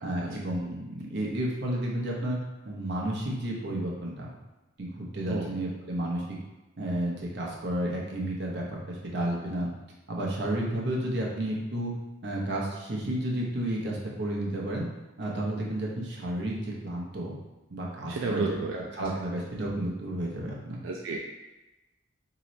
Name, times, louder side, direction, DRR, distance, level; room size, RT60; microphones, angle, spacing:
voice 1, 0.0-2.4 2.6-4.3 4.8-6.4 6.8-9.7 10.1-11.9 12.2-14.9 15.2-17.3 17.7-20.8, right 1 dB, 60° right, -3 dB, 0.8 m, -32 dB
voice 2, 18.1-18.8 20.8-21.2, right 3 dB, 85° right, -1 dB, 0.4 m, -31 dB
3.1 x 2.9 x 3.9 m, 1.0 s
head